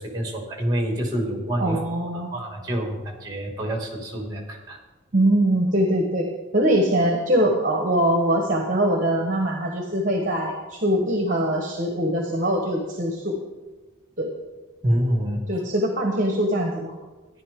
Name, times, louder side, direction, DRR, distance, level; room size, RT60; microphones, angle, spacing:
voice 1, 0.0-1.8 2.1-4.8 14.8-15.4, equal, 20° right, 1 dB, 2.2 m, -27 dB
voice 2, 1.6-2.3 5.1-13.4 14.2-14.3 15.5-17.0, right 1 dB, 40° right, 1 dB, 1.3 m, -22 dB
13.5 x 10.5 x 3.7 m, 1.3 s
head